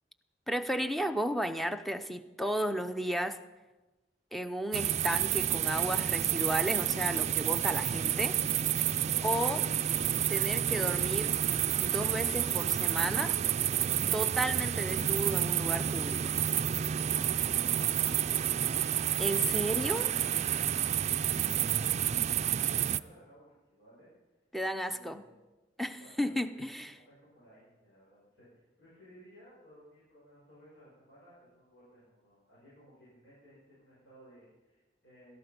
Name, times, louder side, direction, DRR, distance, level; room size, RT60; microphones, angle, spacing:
voice 1, 0.5-3.4 4.3-8.3 9.2-9.7 10.3-11.3 11.8-13.4 14.1-16.3 19.2-20.1 24.5-25.2 25.8-26.9, equal, ahead, 9 dB, 0.6 m, -33 dB
sound 1, 4.7-23.0, right 10 dB, 40° right, 0.4 m, -29 dB
voice 2, 7.8-8.3 9.0-9.5 17.0-18.7 19.4-20.5 20.9-24.1 24.8-25.3 26.0-35.4, equal, 85° left, -8 dB, 6.2 m, -58 dB
17.5 x 13.5 x 5.3 m, 1.1 s
head